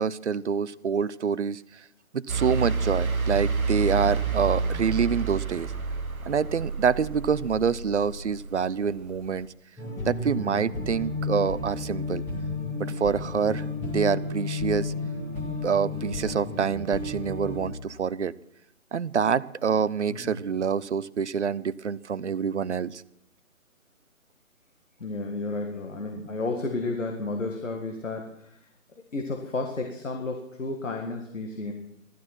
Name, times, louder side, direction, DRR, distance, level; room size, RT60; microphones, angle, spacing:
voice 1, 0.0-1.8 2.1-5.7 6.3-9.5 10.1-12.2 12.9-13.7 13.9-14.9 15.6-18.3 18.9-23.0, right 6 dB, 55° right, 19 dB, 0.6 m, -26 dB
sound 1, 2.3-9.4, right 4 dB, 90° right, 1.0 m, -29 dB
sound 2, 9.8-17.7, left 3 dB, 5° left, 1.5 m, -32 dB
voice 2, 20.1-20.4 25.0-28.6 29.1-31.7, left 3 dB, 65° left, 3 dB, 2.0 m, -32 dB
15.0 x 12.0 x 6.0 m, 0.77 s
figure-of-eight pair, 145°, 41 cm